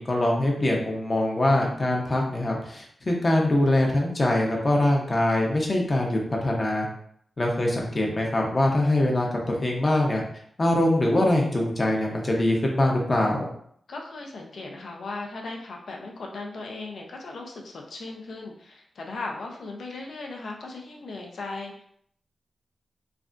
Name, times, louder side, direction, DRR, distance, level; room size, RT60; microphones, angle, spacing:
voice 1, 0.0-6.9 7.4-10.2 10.6-13.5, left 1 dB, 35° left, -1 dB, 0.7 m, -23 dB
voice 2, 13.9-21.8, left 3 dB, 75° left, 1 dB, 0.5 m, -37 dB
3.2 x 2.4 x 2.5 m, 0.66 s
wide cardioid pair, 110°, 0 cm